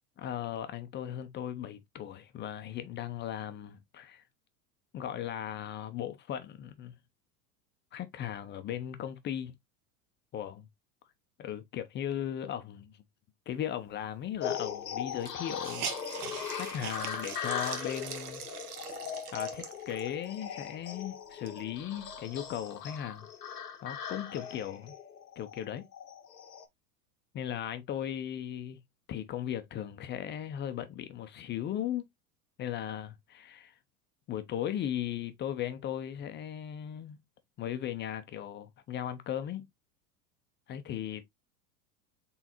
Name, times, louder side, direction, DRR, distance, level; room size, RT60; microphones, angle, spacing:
voice 1, 0.2-4.2 4.9-6.9 7.9-9.5 10.3-10.7 11.4-13.0 13.5-15.9 16.5-18.4 19.3-23.3 23.8-24.9 25.4-25.9 27.3-28.8 29.1-32.1 32.6-33.7 34.3-37.2 37.6-39.7 40.7-41.2, left 10 dB, 25° left, 0.5 m, -37 dB
sound 1, 14.4-26.6, left 8 dB, 90° left, 0.8 m, -39 dB
Hiss, 14.4-14.5 14.7-14.8 15.2-20.2 20.8-20.9 21.3-22.6, right 7 dB, 70° right, 1.1 m, -42 dB
3.9 x 3.8 x 2.8 m
hypercardioid pair, 90°, 47 cm